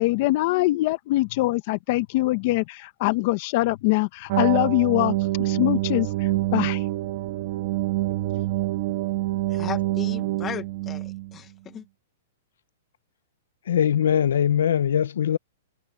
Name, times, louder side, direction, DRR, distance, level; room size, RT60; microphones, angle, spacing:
voice 1, 0.0-6.8, left 19 dB, 40° left, 1.3 m, -23 dB
sound 1, 4.3-11.4, right 17 dB, 40° right, 1.5 m, -26 dB
voice 2, 9.5-11.8, left 9 dB, 15° left, 1.1 m, -36 dB
voice 3, 13.7-15.4, left 9 dB, 80° left, 0.8 m, -21 dB
hypercardioid pair, 165°, 0 cm